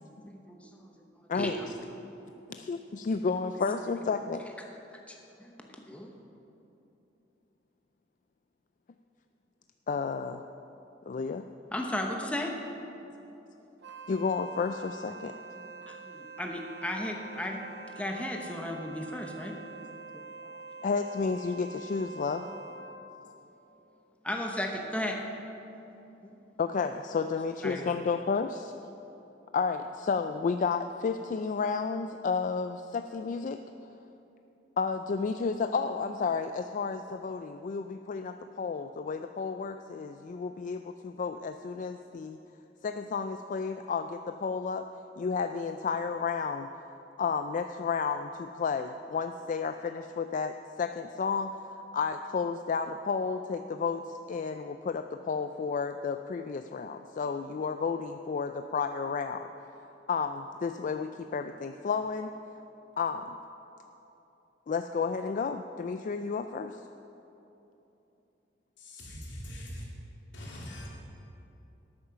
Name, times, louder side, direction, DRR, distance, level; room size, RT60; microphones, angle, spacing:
voice 1, 0.2-0.8 1.3-1.7 5.1-6.1 11.7-12.6 15.7-17.6 18.0-19.5 24.2-25.2 26.2-26.3 27.6-28.0, left 1 dB, 5° left, 0.9 m, -35 dB
voice 2, 2.5-4.4 9.9-10.4 11.1-11.5 14.1-15.4 20.8-22.5 26.6-28.7 29.5-33.6 34.8-42.4 42.8-44.8 45.2-46.7 47.2-59.5 60.1-62.3 63.0-63.3 64.7-66.8, left 5 dB, 45° left, 0.3 m, -32 dB
Wind instrument woodwind instrument, 13.8-23.1, right 3 dB, 65° right, 0.9 m, -46 dB
voice 3, 68.8-69.9 70.3-70.9, equal, 80° left, 2.8 m, -42 dB
12.5 x 8.8 x 5.8 m
head